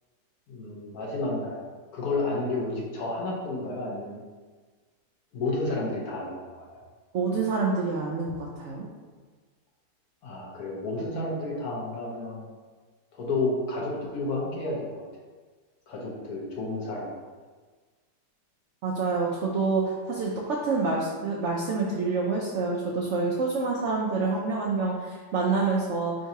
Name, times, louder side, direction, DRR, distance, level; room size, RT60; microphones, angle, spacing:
voice 1, 0.5-1.6 1.9-4.2 5.3-6.8 10.2-12.4 13.1-15.0 15.9-17.1, left 2 dB, 65° left, -3 dB, 1.3 m, -31 dB
voice 2, 7.1-8.8 18.8-26.2, right 4 dB, 70° right, -3 dB, 0.6 m, -27 dB
4.5 x 3.7 x 2.7 m, 1.4 s
omnidirectional pair, 1.8 m